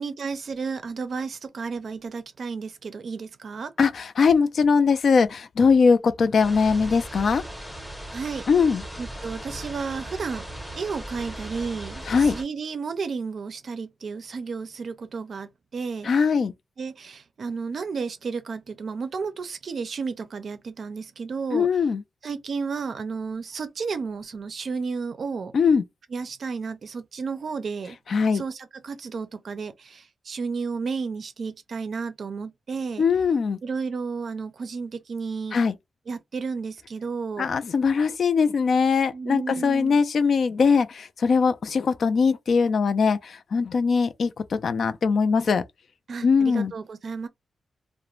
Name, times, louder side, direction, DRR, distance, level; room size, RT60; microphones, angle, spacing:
voice 1, 0.0-3.7 8.1-8.5 9.0-10.4 10.8-16.1 16.8-21.7 22.2-25.5 26.1-28.0 28.3-33.0 33.6-35.6 36.1-37.5 39.1-40.0 46.1-47.3, right 5 dB, 55° right, 0.4 m, -32 dB
voice 2, 3.8-7.4 8.5-8.8 12.1-12.4 16.0-16.5 21.5-22.0 25.5-25.8 28.1-28.4 33.0-33.6 35.5-35.7 37.4-45.6 46.2-46.7, left 5 dB, 60° left, 0.3 m, -21 dB
sound 1, 6.4-12.4, right 1 dB, ahead, 0.7 m, -38 dB
2.4 x 2.1 x 3.0 m
wide cardioid pair, 145°, 0 cm